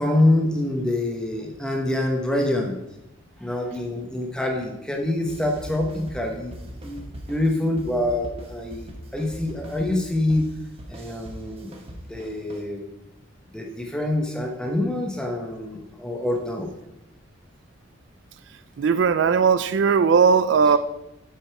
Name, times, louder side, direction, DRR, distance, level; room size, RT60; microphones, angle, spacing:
voice 1, 0.0-2.8 3.4-7.0 7.3-10.5 10.9-11.7 12.1-12.9 13.5-16.7, left 1 dB, 5° left, 1 dB, 1.0 m, -25 dB
sound 1, 5.3-12.6, equal, 30° right, 1.2 m, -41 dB
voice 2, 18.8-20.8, right 6 dB, 65° right, 13 dB, 0.4 m, -18 dB
8.9 x 5.2 x 4.8 m, 0.89 s
head